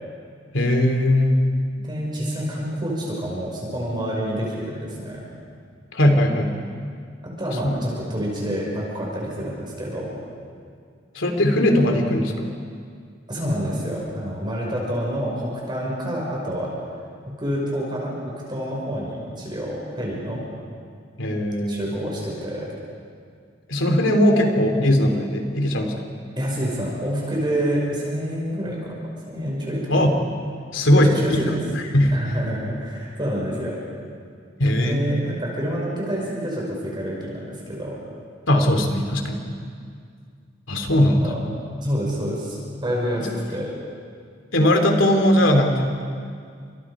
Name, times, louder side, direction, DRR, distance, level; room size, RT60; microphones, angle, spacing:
voice 1, 0.5-1.4 5.9-6.6 7.6-7.8 11.1-12.5 21.2-21.9 23.7-26.1 29.9-30.2 30.7-31.4 31.7-32.1 34.6-35.0 38.5-39.4 40.7-41.2 43.2-43.3 44.5-46.0, left 1 dB, 90° left, 4 dB, 3.1 m, -19 dB
voice 2, 1.8-5.2 7.4-10.1 13.3-16.7 17.4-18.2 18.5-20.4 21.7-22.7 26.4-29.0 29.3-29.8 31.0-31.6 32.1-33.8 34.8-37.4 37.7-38.0 41.1-41.4 41.8-43.7, equal, 25° right, -3 dB, 5.7 m, -27 dB
30.0 x 26.5 x 5.0 m, 2.2 s
head